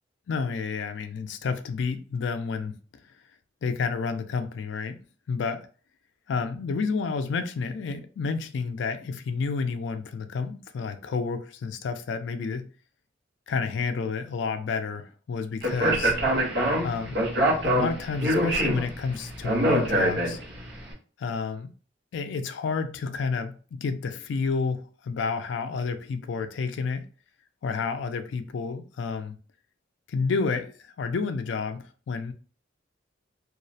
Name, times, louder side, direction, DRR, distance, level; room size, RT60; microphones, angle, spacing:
voice 1, 0.3-2.8 3.6-5.0 5.3-5.7 6.3-12.7 13.5-16.2 16.8-17.2 17.6-20.4 21.2-21.7 22.1-27.1 27.6-29.4 30.1-32.3, left 5 dB, 75° left, 0.3 m, -30 dB
Speech, 15.6-20.7, right 1 dB, 60° right, 0.8 m, -24 dB
2.3 x 2.0 x 2.6 m
head